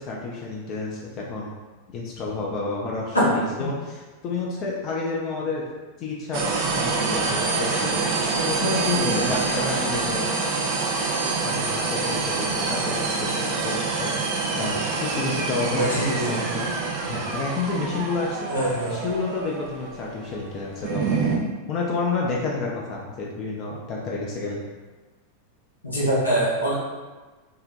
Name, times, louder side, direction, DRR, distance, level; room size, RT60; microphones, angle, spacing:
voice 1, 0.0-1.5 1.9-5.7 6.0-10.3 11.4-13.0 13.4-16.7 17.1-18.5 18.9-21.2 21.7-24.6, left 3 dB, 35° left, -3 dB, 0.4 m, -30 dB
sound 1, 6.3-21.4, right 4 dB, 45° right, 0.4 m, -26 dB
voice 2, 8.9-9.3 15.7-16.3 18.5-19.0 25.8-26.7, right 1 dB, 80° left, -6 dB, 0.7 m, -24 dB
2.7 x 2.0 x 2.5 m, 1.3 s
figure-of-eight pair, 90°, 0 cm